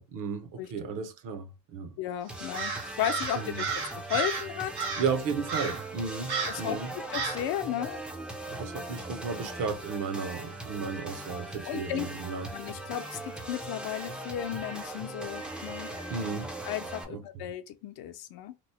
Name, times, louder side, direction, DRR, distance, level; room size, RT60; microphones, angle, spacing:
voice 1, 0.0-1.9 2.4-2.5 3.4-3.6 5.0-6.9 8.5-12.5 16.1-16.5 17.1-17.2, right 5 dB, 55° right, 0.7 m, -34 dB
voice 2, 0.6-0.9 2.0-4.7 6.5-6.8 7.1-8.0 11.7-12.1 12.5-15.9 16.7-18.5, left 11 dB, 75° left, 0.6 m, -34 dB
sound 1, 2.3-17.0, right 1 dB, 5° right, 0.4 m, -40 dB
Crow, 2.5-4.5 4.8-5.1 5.5-5.9 6.3-6.7 7.1-7.5, right 5 dB, 85° right, 1.2 m, -33 dB
3.0 x 2.0 x 4.1 m
cardioid pair, 175°, 38 cm